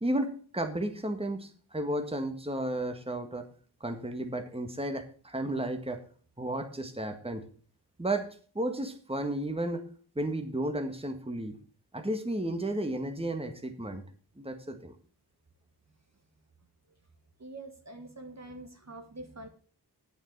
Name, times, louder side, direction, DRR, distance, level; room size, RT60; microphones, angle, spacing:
voice 1, 0.0-3.5 3.8-6.0 6.4-7.4 8.0-8.3 8.6-9.8 10.2-11.6 11.9-14.0 14.4-15.0, right 1 dB, 15° right, 6 dB, 1.7 m, -33 dB
voice 2, 17.4-19.5, right 2 dB, 40° right, 5 dB, 1.6 m, -45 dB
8.5 x 7.3 x 6.8 m, 0.42 s
cardioid pair, 40°, 40 cm